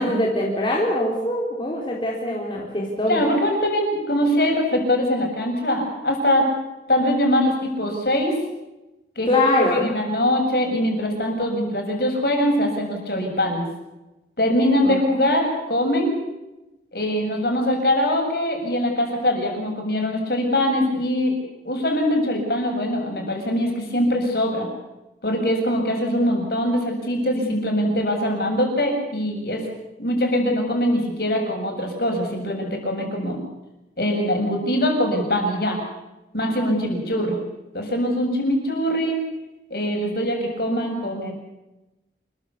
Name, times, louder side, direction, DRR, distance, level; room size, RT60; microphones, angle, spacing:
voice 1, 0.0-3.2 9.3-9.9 14.8-15.0 37.1-37.3, left 1 dB, 25° left, -2 dB, 3.8 m, -23 dB
voice 2, 3.1-6.5 6.9-8.4 9.2-9.3 9.5-13.7 14.4-16.2 16.9-21.3 21.6-24.7 25.2-29.7 30.0-33.4 34.0-35.8 36.3-37.4 37.7-39.2 39.7-41.3, equal, 55° left, 2 dB, 7.3 m, -22 dB
28.0 x 15.0 x 8.4 m, 0.99 s
head